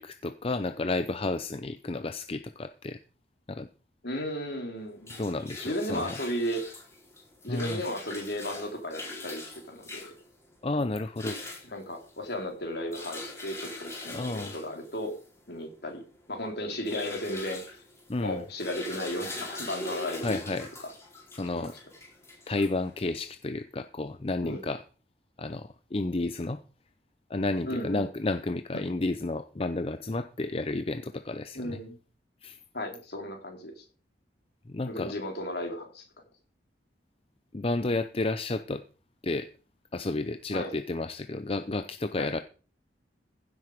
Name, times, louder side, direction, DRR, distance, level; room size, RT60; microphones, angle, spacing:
voice 1, 0.0-3.0 3.5-3.7 5.2-6.2 7.5-7.8 10.6-11.4 14.1-14.5 18.1-18.4 20.2-20.7 21.3-21.7 22.5-24.8 25.4-26.6 27.3-31.8 32.4-32.6 34.7-35.1 37.5-38.8 39.2-39.5 39.9-42.4, left 2 dB, 30° left, 10 dB, 0.6 m, -31 dB
voice 2, 4.0-5.2 5.6-6.6 7.4-10.0 11.7-15.1 15.5-16.0 16.3-17.6 18.2-20.4 21.6-21.7 24.4-24.6 27.7-28.1 31.5-32.0 32.7-33.8 34.8-36.0 40.5-40.7 42.2-42.3, equal, 60° left, 2 dB, 4.1 m, -34 dB
sound 1, 4.8-23.3, left 2 dB, 15° left, 4.5 m, -43 dB
16.0 x 7.6 x 5.1 m, 0.37 s
head